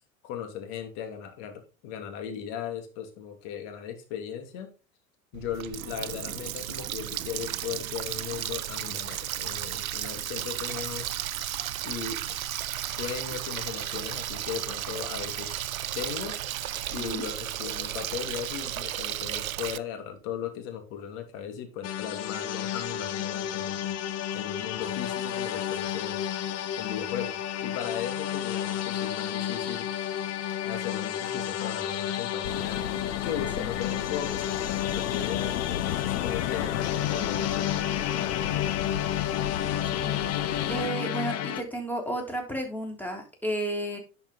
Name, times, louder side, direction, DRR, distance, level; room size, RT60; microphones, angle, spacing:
voice 1, 0.2-4.7 5.3-11.1 11.8-12.4 12.9-15.7 15.9-16.4 16.9-24.0 24.3-26.3 26.8-29.9 30.6-32.8 33.2-36.8 37.1-39.0, left 8 dB, 60° left, 2.7 m, -37 dB
Water tap faucet, 5.3-19.8, right 12 dB, 85° right, 0.6 m, -34 dB
voice 2, 17.0-17.3 33.6-33.7 39.8-44.0, right 1 dB, 5° left, 3.5 m, -33 dB
sound 1, 21.8-41.6, left 10 dB, 40° left, 1.2 m, -31 dB
sound 2, 32.4-40.9, left 12 dB, 75° left, 0.7 m, -34 dB
11.0 x 5.8 x 4.0 m
figure-of-eight pair, 75°, 41 cm